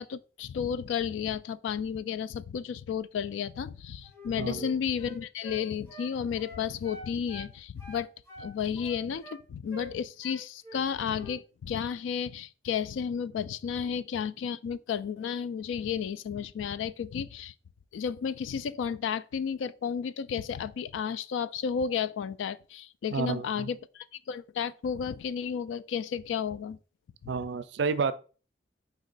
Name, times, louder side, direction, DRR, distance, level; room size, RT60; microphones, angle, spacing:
voice 1, 0.0-8.1 8.4-17.5 17.9-26.8 27.2-27.3, left 7 dB, 85° left, 0.3 m, -32 dB
Wind instrument woodwind instrument, 4.0-7.5 7.8-9.4 9.7-9.9 10.2-10.9 11.1-11.4, left 1 dB, 15° left, 1.1 m, -45 dB
voice 2, 4.4-4.7 23.1-23.7 27.3-28.1, right 5 dB, 70° right, 0.4 m, -30 dB
4.3 x 3.0 x 3.9 m
head